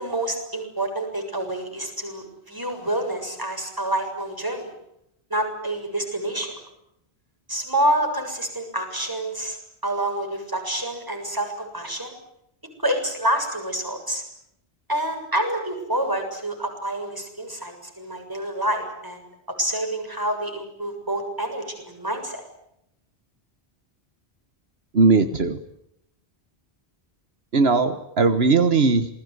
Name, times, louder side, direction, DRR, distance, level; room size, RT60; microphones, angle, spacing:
voice 1, 0.0-4.7 5.3-6.5 7.5-9.6 9.8-12.1 12.8-14.2 14.9-19.2 19.6-22.4, right 1 dB, 20° right, 3 dB, 7.3 m, -27 dB
voice 2, 24.9-25.6 27.5-29.1, right 4 dB, 75° right, 10 dB, 1.6 m, -18 dB
28.0 x 21.0 x 9.6 m, 0.80 s
omnidirectional pair, 1.1 m